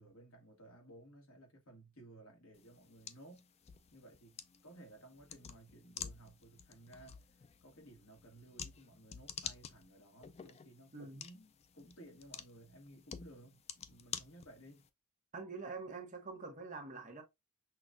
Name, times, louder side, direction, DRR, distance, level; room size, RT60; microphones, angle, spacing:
voice 1, 0.0-3.4 3.9-7.3 7.6-14.8, right 1 dB, 60° left, 1.4 m, -57 dB
sound 1, 2.5-14.9, left 7 dB, 30° left, 0.3 m, -50 dB
voice 2, 10.9-11.2 15.3-17.2, right 4 dB, 35° right, 1.1 m, -45 dB
5.9 x 2.4 x 2.5 m
head